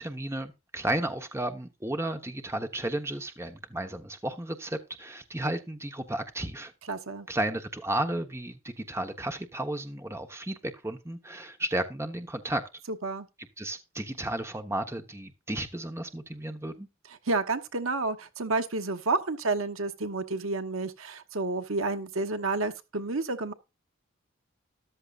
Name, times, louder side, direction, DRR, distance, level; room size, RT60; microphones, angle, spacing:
voice 1, 0.0-6.7 7.3-12.6 13.6-16.9, right 1 dB, 10° right, 1.2 m, -33 dB
voice 2, 6.9-7.3 12.9-13.3 17.3-23.5, right 3 dB, 80° right, 1.2 m, -30 dB
14.0 x 11.5 x 2.5 m
head